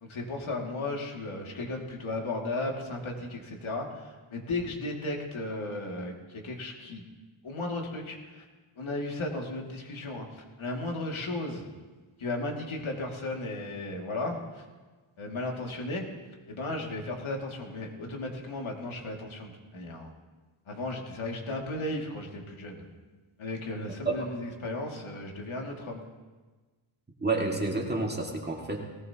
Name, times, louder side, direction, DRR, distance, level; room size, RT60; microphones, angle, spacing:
voice 1, 0.0-7.0 7.4-8.4 8.8-11.6 12.2-14.6 15.2-16.0 16.5-20.1 20.7-22.8 23.4-26.0, left 2 dB, 70° left, 0 dB, 2.5 m, -35 dB
voice 2, 27.2-28.8, right 3 dB, 20° right, -1 dB, 2.2 m, -29 dB
19.0 x 18.5 x 3.0 m, 1.3 s
wide cardioid pair, 125°, 50 cm